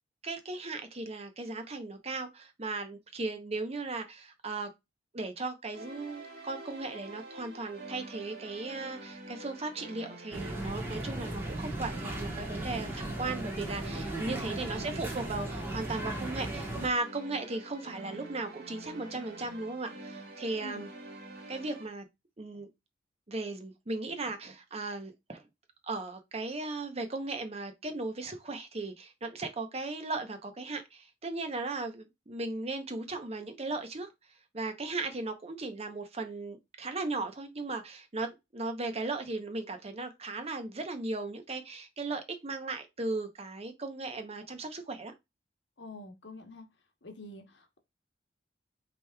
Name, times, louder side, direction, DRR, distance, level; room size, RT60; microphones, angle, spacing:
voice 1, 0.2-4.7 5.1-20.9 21.5-22.0 22.4-22.7 23.3-25.4 25.8-34.1 34.5-45.1, right 3 dB, 35° right, 0.8 m, -37 dB
sound 1, 5.7-21.9, right 2 dB, 60° right, 1.7 m, -46 dB
medium crowd, 10.3-16.9, right 1 dB, 10° right, 1.2 m, -37 dB
voice 2, 14.2-14.6 20.6-20.9 45.8-46.7 47.0-47.8, left 2 dB, 85° left, 1.0 m, -47 dB
5.1 x 3.1 x 2.3 m
head